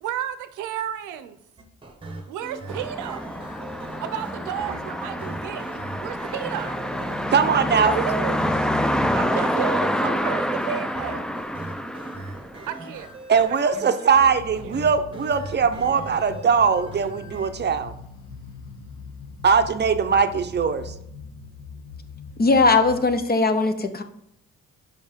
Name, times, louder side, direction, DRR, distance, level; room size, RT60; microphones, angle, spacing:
voice 1, 0.0-1.4 2.3-3.2 4.0-7.2 7.5-8.7 9.1-11.3 12.7-13.1 13.5-13.8 14.2-14.3 14.6-14.7, right 10 dB, 90° right, 0.6 m, -32 dB
sound 1, 1.6-17.5, right 2 dB, 15° right, 1.2 m, -40 dB
sound 2, 2.7-12.9, equal, ahead, 0.4 m, -27 dB
voice 2, 7.3-7.9 13.3-17.9 19.4-20.9, right 6 dB, 35° right, 0.7 m, -20 dB
sound 3, 14.3-23.1, left 3 dB, 85° left, 1.0 m, -41 dB
voice 3, 22.4-24.0, left 3 dB, 30° left, 0.7 m, -19 dB
5.5 x 5.3 x 5.2 m
cardioid pair, 90°, 30 cm